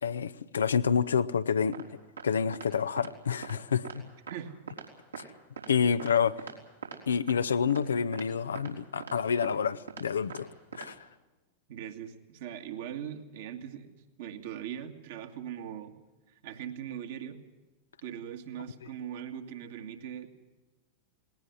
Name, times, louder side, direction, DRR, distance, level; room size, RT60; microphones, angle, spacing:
voice 1, 0.0-1.8 2.2-4.0 5.2-5.3 5.7-6.4 7.1-10.5 10.7-11.0, left 6 dB, 70° left, 0.8 m, -28 dB
sound 1, 1.7-1.8 2.2-2.3 2.5-2.7 3.0-3.1 3.4-3.6 3.8-4.0 4.3-4.4 4.7-4.9 5.1-5.3 5.6-5.7 6.0-6.1 6.4-6.5 6.8-7.0 7.3-7.4 7.7-7.8 8.1-8.2 8.5-8.7 9.0-9.1 9.4-9.5 9.9-10.0 10.3-10.4 10.7-10.9, right 7 dB, 80° right, 3.7 m, -42 dB
voice 2, 11.7-15.9 16.4-17.4 18.0-20.4, right 9 dB, 55° right, 2.1 m, -40 dB
19.5 x 18.0 x 9.6 m
figure-of-eight pair, 90°, 0 cm